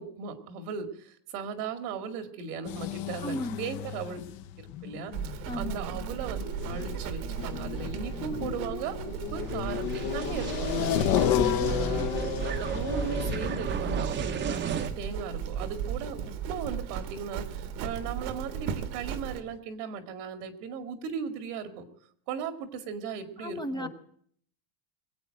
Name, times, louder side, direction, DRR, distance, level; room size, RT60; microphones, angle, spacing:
voice 1, 0.0-4.2 4.6-10.9 11.7-12.0 12.5-21.9 22.3-23.9, right 6 dB, 85° right, 7 dB, 2.3 m, -37 dB
sound 1, 2.6-18.3 18.6-18.7 19.2-19.3 19.5-19.6, left 11 dB, 55° left, 1.0 m, -33 dB
voice 2, 3.2-3.8 5.5-5.8 11.1-11.7 23.4-23.9, left 1 dB, 10° left, 7 dB, 0.6 m, -36 dB
Livestock farm animals working animals, 5.1-19.4, right 9 dB, 65° right, 1.5 m, -36 dB
sound 2, 9.4-14.9, right 6 dB, 25° right, 0.8 m, -34 dB
22.0 x 8.4 x 7.7 m, 0.63 s
cardioid pair, 145°, 45 cm